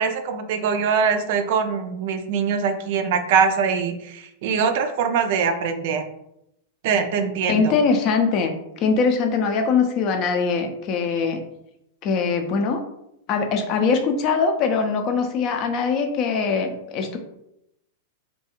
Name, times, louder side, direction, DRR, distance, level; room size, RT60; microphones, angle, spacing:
voice 1, 0.0-6.0 6.8-7.8, right 6 dB, 55° right, 7 dB, 0.3 m, -22 dB
voice 2, 7.5-11.4 12.0-12.8 13.3-17.2, left 5 dB, 45° left, 5 dB, 0.4 m, -22 dB
2.4 x 2.2 x 2.9 m, 0.81 s
hypercardioid pair, 100°, 0 cm